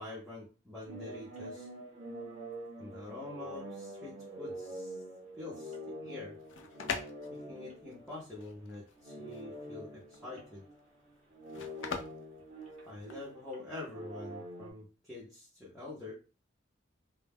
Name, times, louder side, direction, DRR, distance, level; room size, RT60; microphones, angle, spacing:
voice 1, 0.0-1.7 2.8-5.0 5.3-6.4 7.3-10.6 12.9-16.1, left 2 dB, ahead, -8 dB, 0.6 m, -46 dB
sound 1, 0.9-8.7 9.0-14.7, right 1 dB, 35° right, 0.7 m, -46 dB
sound 2, 6.2-13.3, left 5 dB, 75° left, 0.4 m, -43 dB
2.1 x 2.1 x 3.4 m, 0.34 s
head